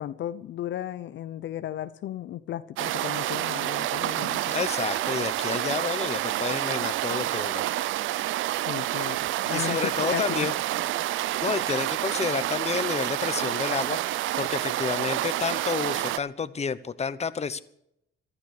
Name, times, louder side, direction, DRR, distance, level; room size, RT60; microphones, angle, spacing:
voice 1, 0.0-4.5 8.7-9.2 9.5-10.5, left 11 dB, 70° left, 0.7 m, -35 dB
sound 1, 2.8-16.2, right 14 dB, 80° right, 0.5 m, -28 dB
voice 2, 4.5-7.6 9.5-10.6 11.4-17.6, left 6 dB, 35° left, 1.0 m, -30 dB
15.0 x 12.5 x 6.7 m
cardioid pair, 90°, 20 cm